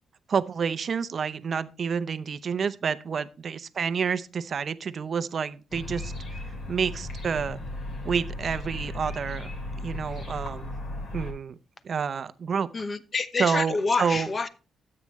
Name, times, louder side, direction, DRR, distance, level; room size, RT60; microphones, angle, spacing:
voice 1, 0.3-6.1 6.7-7.6 8.0-9.5 9.8-10.7 11.1-11.5 11.8-12.7 13.4-14.3, right 6 dB, 45° right, 0.7 m, -29 dB
sound 1, 5.7-11.3, left 2 dB, 55° left, 3.2 m, -36 dB
voice 2, 12.7-14.5, left 4 dB, 35° left, 0.9 m, -27 dB
13.0 x 8.8 x 3.1 m
cardioid pair, 125°, 0 cm